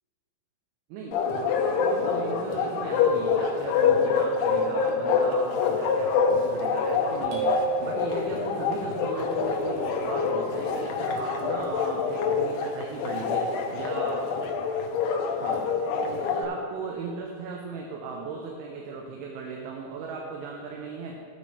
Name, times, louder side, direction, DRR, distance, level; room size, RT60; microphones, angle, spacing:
voice 1, 0.9-7.5 7.8-14.3 15.3-21.2, right 4 dB, 80° right, 0 dB, 3.1 m, -37 dB
Bark, 1.1-16.4, left 5 dB, 85° left, 2.3 m, -26 dB
sound 1, 7.3-8.8, right 8 dB, 65° right, 2.9 m, -32 dB
15.5 x 7.4 x 3.3 m, 2.5 s
omnidirectional pair, 5.6 m